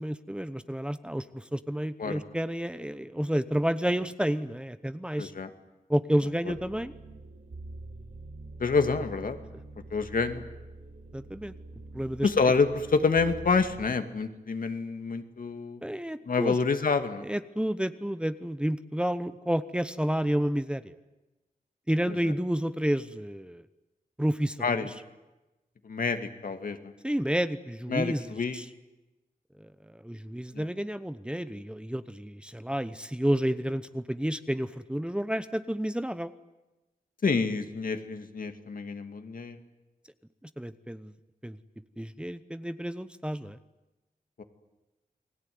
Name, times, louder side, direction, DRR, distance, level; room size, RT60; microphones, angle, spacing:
voice 1, 0.0-5.3 5.9-6.9 11.1-11.5 11.9-12.3 15.8-16.5 17.2-20.9 21.9-23.6 24.2-24.9 27.0-28.6 29.6-36.3 40.6-41.1 41.4-41.6 42.0-43.6, equal, 5° right, 12 dB, 0.9 m, -30 dB
voice 2, 5.2-5.5 6.5-6.6 8.6-9.4 9.9-10.4 12.2-15.8 16.3-17.2 22.1-22.3 24.6-24.9 25.8-26.9 27.9-28.6 30.5-30.6 37.2-39.6 44.4-44.5, left 4 dB, 70° left, 7 dB, 2.3 m, -28 dB
sound 1, 6.5-13.9, right 2 dB, 75° right, 2.6 m, -45 dB
29.0 x 20.5 x 9.5 m, 1.0 s
wide cardioid pair, 125°, 15 cm